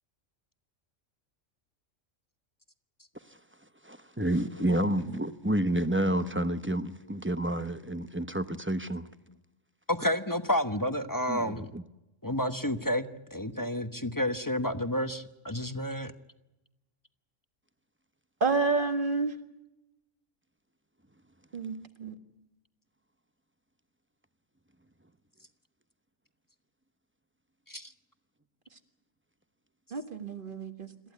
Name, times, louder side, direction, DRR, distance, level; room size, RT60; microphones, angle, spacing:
voice 1, 3.8-9.1 11.3-11.8, right 1 dB, 10° right, 0.8 m, -29 dB
voice 2, 9.9-11.7 12.2-16.1 27.7-27.9, left 1 dB, 15° left, 1.0 m, -30 dB
voice 3, 18.4-19.4 21.5-22.1 29.9-30.9, right 4 dB, 40° right, 1.9 m, -29 dB
27.0 x 14.5 x 9.4 m
omnidirectional pair, 1.3 m